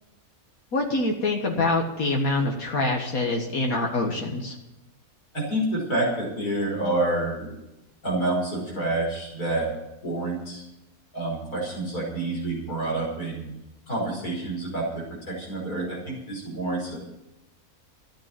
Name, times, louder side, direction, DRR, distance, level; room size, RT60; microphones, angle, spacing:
voice 1, 0.7-4.6, left 2 dB, 70° left, 1 dB, 2.0 m, -25 dB
voice 2, 5.3-7.5 8.0-9.7 10.0-10.6 11.1-13.5 13.9-17.0, right 2 dB, 90° left, -2 dB, 5.9 m, -28 dB
14.0 x 10.0 x 7.5 m, 0.92 s
omnidirectional pair, 1.6 m